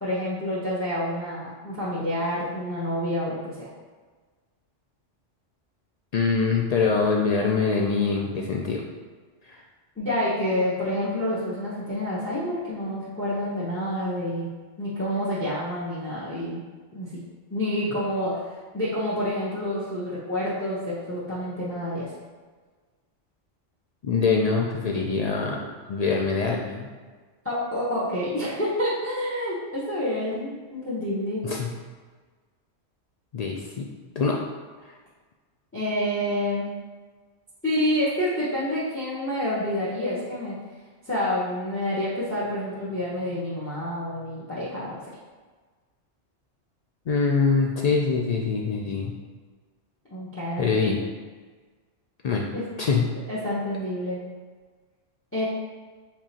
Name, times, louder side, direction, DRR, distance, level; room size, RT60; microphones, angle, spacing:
voice 1, 0.0-3.6 10.0-14.5 14.8-16.6 16.9-17.1 17.5-22.1 27.4-31.4 35.7-36.7 37.6-40.5 41.1-45.0 50.1-50.9 52.5-52.6 53.3-54.2 55.3-55.5, left 1 dB, 10° left, -9 dB, 0.9 m, -28 dB
voice 2, 6.1-8.8 9.5-9.6 24.0-26.9 31.4-31.7 33.3-33.9 34.2-34.4 47.1-49.1 50.6-51.0 52.2-52.5 52.8-53.1, left 4 dB, 80° left, -1 dB, 0.3 m, -24 dB
4.8 x 3.6 x 2.8 m, 1.4 s
omnidirectional pair, 1.2 m